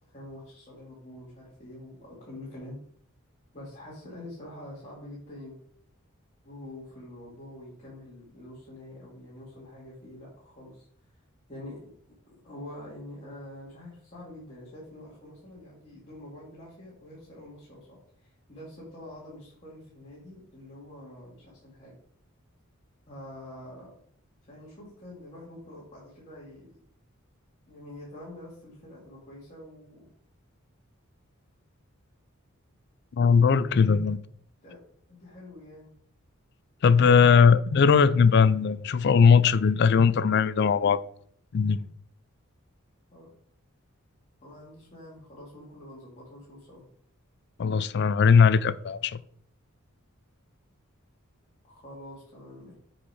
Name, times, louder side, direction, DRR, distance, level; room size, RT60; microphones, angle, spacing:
voice 1, 0.0-2.8 3.5-5.6 6.4-11.1 11.5-11.9 12.3-22.0 23.1-23.9 24.4-26.8 27.7-30.1 34.6-34.8 35.1-35.9 43.1-43.3 44.4-46.8 51.6-52.7, left 1 dB, 35° left, 2.2 m, -46 dB
voice 2, 33.2-34.2 36.8-41.0 41.5-41.9 47.6-49.2, left 6 dB, 50° left, 0.4 m, -19 dB
7.2 x 4.4 x 4.8 m
head